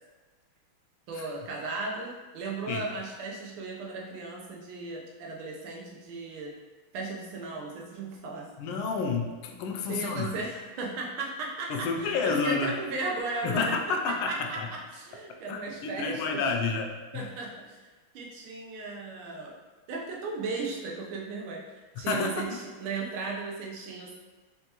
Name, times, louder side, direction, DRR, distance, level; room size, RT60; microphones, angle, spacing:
voice 1, 1.1-6.6 6.9-8.5 9.9-16.5 17.1-17.8 18.1-19.6 19.9-24.1, right 3 dB, 85° right, -1 dB, 1.6 m, -36 dB
voice 2, 8.6-10.3 11.7-12.7 13.4-14.3 14.6-14.7 15.5-17.3 22.1-22.6, left 4 dB, 80° left, 3 dB, 1.3 m, -30 dB
4.4 x 3.3 x 2.8 m, 1.3 s
omnidirectional pair, 2.2 m